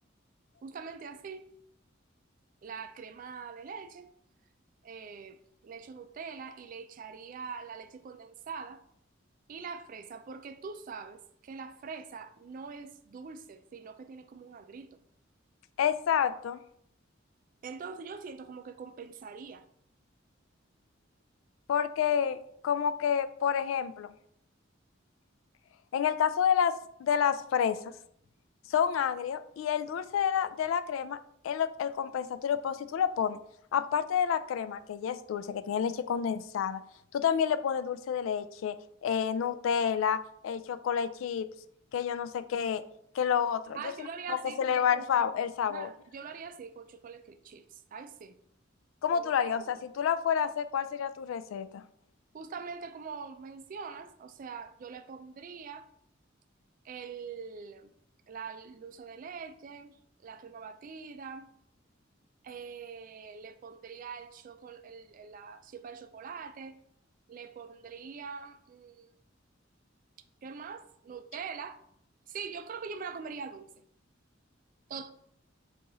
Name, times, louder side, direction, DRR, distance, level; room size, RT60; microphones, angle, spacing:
voice 1, 0.6-1.5 2.6-4.1 4.8-8.8 9.5-14.9 17.6-19.6 43.7-45.3 45.7-48.4 49.1-49.8 52.3-55.9 56.8-57.9 58.3-60.0 60.2-61.5 62.4-66.8 67.3-69.1 70.4-71.8 72.3-73.8 74.9-75.1, right 5 dB, 45° right, 0.3 m, -43 dB
voice 2, 15.8-16.6 21.7-22.4 22.6-24.1 25.9-26.7 27.0-27.9 28.7-31.2 31.4-33.4 33.7-36.8 37.1-38.7 39.0-41.5 41.9-42.8 43.1-43.8 44.3-45.9 49.0-51.8, left 8 dB, 80° left, 0.3 m, -29 dB
4.7 x 2.4 x 3.9 m
head